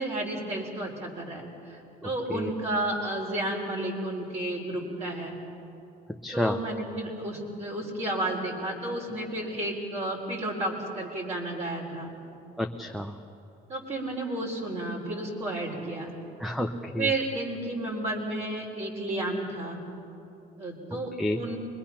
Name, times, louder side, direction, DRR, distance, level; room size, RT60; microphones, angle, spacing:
voice 1, 0.0-5.4 6.3-12.1 13.7-16.1 17.0-19.8 20.6-21.5, right 1 dB, 40° right, -2 dB, 4.1 m, -32 dB
voice 2, 2.0-2.5 6.2-6.6 12.6-13.2 16.4-17.1 21.2-21.4, left 1 dB, ahead, 6 dB, 0.8 m, -30 dB
24.5 x 21.5 x 5.8 m, 2.8 s
cardioid pair, 110°, 17 cm